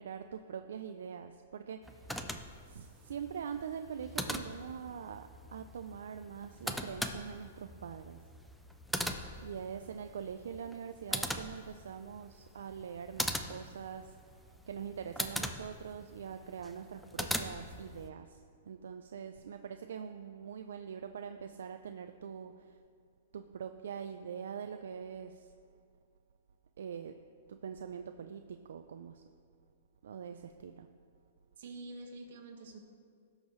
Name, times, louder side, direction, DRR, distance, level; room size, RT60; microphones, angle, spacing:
voice 1, 0.0-2.3 2.7-8.2 9.4-14.1 14.7-18.4 18.7-22.8 23.3-25.5 26.8-27.1 27.5-29.2 30.0-30.9, right 7 dB, 80° right, 7 dB, 0.4 m, -43 dB
sound 1, 1.8-18.1, equal, ahead, 0.4 m, -41 dB
voice 2, 31.6-32.8, right 2 dB, 60° right, 2 dB, 1.6 m, -47 dB
17.0 x 6.4 x 3.2 m, 2.2 s
hypercardioid pair, 165°, 0 cm